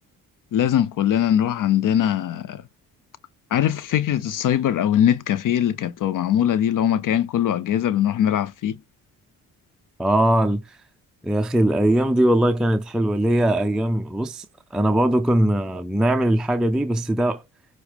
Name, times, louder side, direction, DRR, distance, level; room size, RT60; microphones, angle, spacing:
voice 1, 0.5-2.6 3.5-8.8, left 10 dB, 60° left, 0.5 m, -21 dB
voice 2, 10.0-10.8 11.2-14.5 14.7-17.4, right 1 dB, ahead, 0.4 m, -20 dB
7.1 x 4.4 x 3.4 m
cardioid pair, 80°, 37 cm